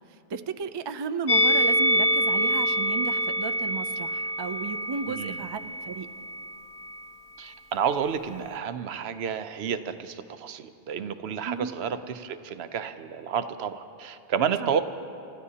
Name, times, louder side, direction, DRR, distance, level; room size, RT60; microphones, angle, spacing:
voice 1, 0.1-6.1 11.4-11.7 14.6-14.7, right 5 dB, 40° right, 10 dB, 0.3 m, -34 dB
Musical instrument, 1.3-6.5 6.8-7.0, equal, 75° left, 1.0 m, -26 dB
voice 2, 5.1-5.4 7.4-14.8, right 7 dB, 90° right, 10 dB, 0.9 m, -30 dB
29.5 x 13.5 x 2.8 m, 2.7 s
omnidirectional pair, 1.0 m